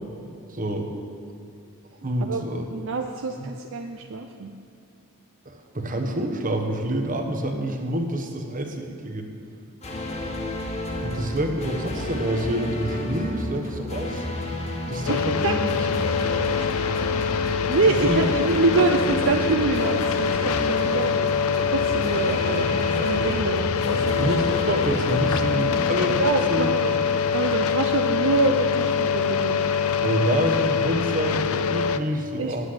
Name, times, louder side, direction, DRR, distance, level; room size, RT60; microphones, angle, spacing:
voice 1, 0.5-0.9 2.0-2.6 3.4-3.5 5.4-9.3 11.0-14.2 14.9-15.6 17.9-18.2 24.2-26.2 26.5-27.0 30.0-32.7, right 1 dB, 35° right, 4 dB, 1.2 m, -27 dB
voice 2, 2.7-4.5 11.0-11.3 15.1-15.5 17.3-21.1 21.7-24.2 26.1-26.9 27.3-29.6 32.4-32.7, right 3 dB, 60° right, 3 dB, 0.6 m, -25 dB
sound 1, 9.8-26.9, left 1 dB, 30° left, 1.3 m, -31 dB
sound 2, 15.1-32.0, left 6 dB, 65° left, 0.5 m, -24 dB
10.0 x 8.2 x 7.9 m, 2.3 s
head